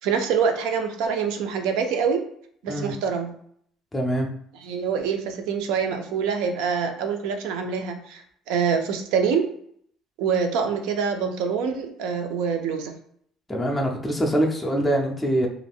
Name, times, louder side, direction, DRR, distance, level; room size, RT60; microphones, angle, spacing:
voice 1, 0.0-2.3 2.6-3.3 4.6-9.5 10.2-13.0, right 6 dB, 75° right, 6 dB, 0.4 m, -25 dB
voice 2, 3.9-4.3 13.5-15.5, right 1 dB, 10° left, 0 dB, 0.4 m, -24 dB
2.4 x 2.2 x 3.4 m, 0.65 s
cardioid pair, 175°, 0 cm